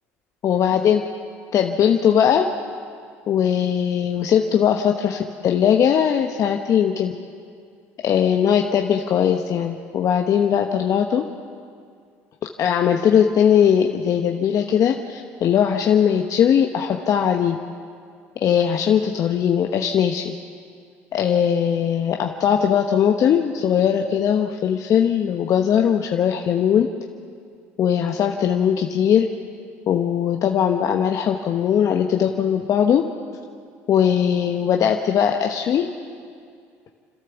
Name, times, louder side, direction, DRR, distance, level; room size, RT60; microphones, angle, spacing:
voice 1, 0.4-1.0 1.5-2.5 3.3-7.1 8.0-11.2 12.6-17.6 18.4-20.3 21.1-26.9 27.8-29.2 29.9-33.0 33.9-35.9, left 8 dB, 50° left, 3 dB, 1.1 m, -19 dB
28.0 x 13.0 x 7.2 m, 2.2 s
hypercardioid pair, 70°, 7 cm